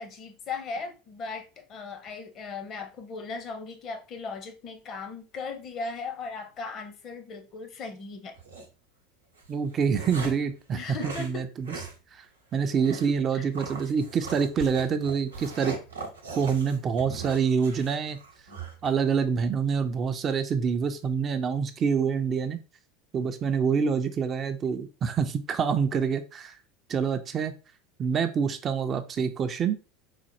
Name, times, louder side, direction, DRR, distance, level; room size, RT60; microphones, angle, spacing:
voice 1, 0.0-8.3 10.7-11.4 13.3-13.5, left 4 dB, 40° left, 0.7 m, -37 dB
sound 1, 8.4-8.7 9.4-10.5 11.0-11.3 11.6-12.0 12.2-12.3 12.8-13.1 13.5-18.9, right 4 dB, 80° right, 0.7 m, -40 dB
voice 2, 9.5-11.8 12.1-12.2 12.5-15.8 16.4-18.2 18.8-22.6 23.1-26.6 26.9-27.5 28.0-29.8, right 6 dB, 35° right, 0.4 m, -26 dB
4.0 x 2.0 x 3.0 m
figure-of-eight pair, 75°, 0 cm